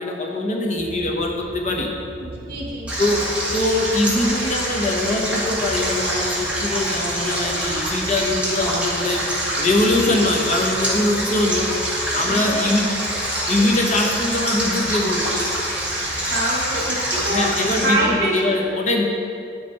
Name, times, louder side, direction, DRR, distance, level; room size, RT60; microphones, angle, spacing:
voice 1, 0.0-1.9 3.0-3.2 3.5-9.2 9.6-11.7 12.1-12.8 13.5-15.4 16.7-16.8 17.2-19.0, left 2 dB, 40° left, 0 dB, 1.0 m, -22 dB
sound 1, 0.8-17.9, right 1 dB, 75° right, 0.9 m, -38 dB
voice 2, 2.2-2.9 10.0-10.3 12.2-12.7 16.3-18.4, right 1 dB, 55° right, -3 dB, 1.8 m, -25 dB
Stream, 2.9-17.9, right 1 dB, 10° right, 2.0 m, -25 dB
9.0 x 6.3 x 4.3 m, 2.5 s
head